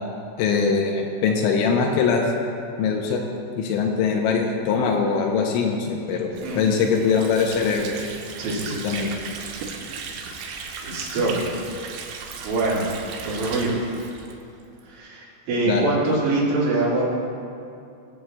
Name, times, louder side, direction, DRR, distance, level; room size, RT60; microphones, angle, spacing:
voice 1, 0.4-2.2 2.8-3.2 3.6-7.9 8.8-9.1 15.7-15.9, left 5 dB, 85° left, 1 dB, 2.9 m, -22 dB
Water / Sink (filling or washing), 6.3-14.9, right 5 dB, 90° right, 3.4 m, -36 dB
voice 2, 8.4-8.8 10.8-11.4 12.4-12.9 13.3-13.8 14.9-17.1, right 2 dB, 70° right, -7 dB, 4.3 m, -24 dB
21.5 x 7.7 x 2.3 m, 2.5 s
omnidirectional pair, 5.6 m